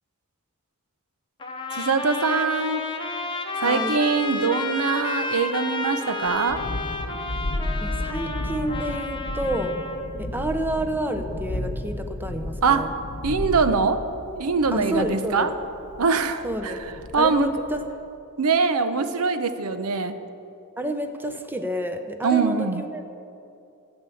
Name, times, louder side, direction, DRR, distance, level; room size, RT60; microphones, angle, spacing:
Trumpet, 1.4-10.1, left 3 dB, 20° left, 0.9 m, -31 dB
voice 1, 1.7-2.8 3.6-6.6 12.6-12.9 13.2-14.0 14.3-15.5 16.0-16.8 17.1-17.6 18.4-20.2 22.2-22.8, right 4 dB, 75° right, 10 dB, 0.8 m, -23 dB
voice 2, 3.6-3.9 7.8-9.7 10.2-12.9 14.7-15.5 16.4-16.8 17.2-17.8 20.8-23.1, right 1 dB, 10° right, 6 dB, 0.8 m, -29 dB
Thunderstorm, 6.3-17.8, left 1 dB, 50° left, 1.0 m, -33 dB
13.0 x 8.1 x 6.9 m, 2.7 s
head